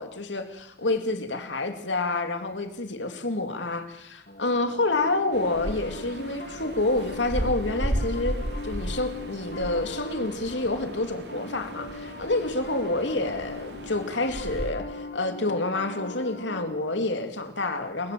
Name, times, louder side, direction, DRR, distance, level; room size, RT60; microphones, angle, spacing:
voice 1, 0.0-8.4 8.6-18.1, left 2 dB, 80° left, 6 dB, 2.7 m, -28 dB
Piano, 4.3-16.7, left 2 dB, 50° left, 2.0 m, -41 dB
sound 1, 5.3-14.7, equal, 65° right, 3.3 m, -35 dB
29.5 x 21.5 x 7.7 m, 0.90 s
head